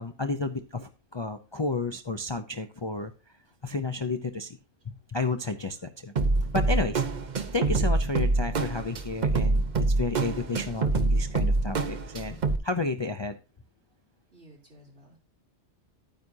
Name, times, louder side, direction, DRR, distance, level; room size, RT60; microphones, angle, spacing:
voice 1, 0.0-3.1 3.6-4.6 4.9-6.1 6.5-7.0 7.5-13.3, left 3 dB, 35° left, 6 dB, 0.5 m, -32 dB
sound 1, 6.2-12.6, right 3 dB, 45° right, 0.9 m, -26 dB
voice 2, 14.3-15.2, right 1 dB, 65° right, -4 dB, 3.7 m, -56 dB
11.0 x 9.2 x 2.7 m, 0.33 s
omnidirectional pair, 1.2 m